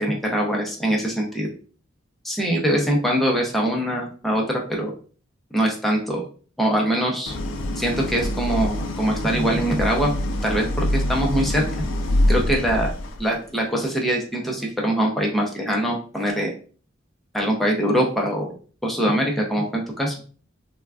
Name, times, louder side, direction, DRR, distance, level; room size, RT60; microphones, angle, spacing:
voice 1, 0.0-1.5 2.2-4.9 5.5-6.2 6.6-7.3 7.8-10.1 10.4-11.6 12.3-12.9 13.2-16.5 17.3-18.5 18.8-20.2, right 1 dB, ahead, -1 dB, 0.5 m, -23 dB
Idling, 7.3-13.3, left 1 dB, 70° left, 0.4 m, -25 dB
3.4 x 2.2 x 2.3 m, 0.41 s
head